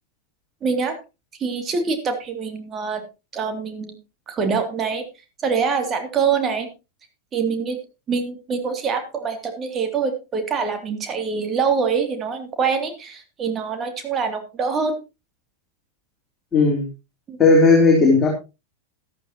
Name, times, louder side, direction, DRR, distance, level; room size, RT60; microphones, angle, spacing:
voice 1, 0.6-1.0 1.4-3.0 3.3-4.0 4.3-5.0 5.4-6.7 7.3-7.8 8.1-14.9 17.3-17.4, right 5 dB, 25° right, 6 dB, 2.8 m, -24 dB
voice 2, 16.5-16.9 17.4-18.3, left 3 dB, 20° left, -2 dB, 3.7 m, -14 dB
14.0 x 12.5 x 2.9 m, 0.27 s
figure-of-eight pair, 90°, 0 cm